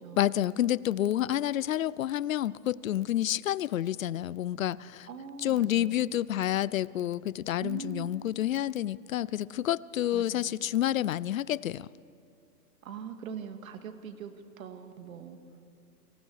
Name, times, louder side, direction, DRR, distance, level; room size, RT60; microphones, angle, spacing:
voice 1, 0.2-5.1 5.4-11.9, left 12 dB, 60° left, 22 dB, 0.6 m, -29 dB
voice 2, 5.1-6.1 7.6-8.1 10.1-10.5 12.8-15.4, right 7 dB, 60° right, 6 dB, 2.4 m, -42 dB
30.0 x 25.5 x 4.8 m, 2.4 s
hypercardioid pair, 155°, 47 cm